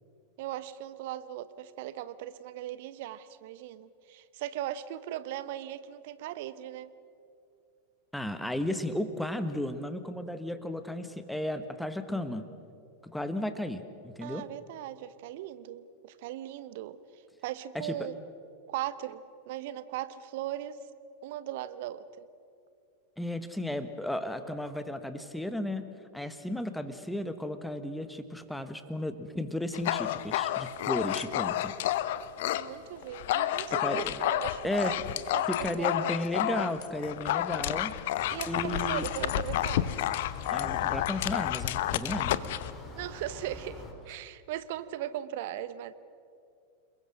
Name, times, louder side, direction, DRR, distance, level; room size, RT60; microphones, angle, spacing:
voice 1, 0.4-6.9 14.2-17.0 17.4-18.1 18.7-20.8 21.2-22.3 32.4-36.2 38.3-39.9 42.9-45.9, right 12 dB, 50° right, 14 dB, 1.0 m, -38 dB
voice 2, 8.1-12.5 13.0-14.5 17.7-18.1 23.2-25.9 26.1-31.7 33.8-34.2 34.6-34.9 35.5-37.9 38.5-39.1 40.5-42.4, left 1 dB, 5° left, 10 dB, 1.5 m, -34 dB
Dog, 29.7-32.7 33.0-42.7, left 13 dB, 55° left, 0.8 m, -30 dB
sound 1, 38.2-43.9, left 3 dB, 20° left, 4.1 m, -45 dB
29.0 x 21.0 x 6.5 m, 2.5 s
figure-of-eight pair, 90°, 0 cm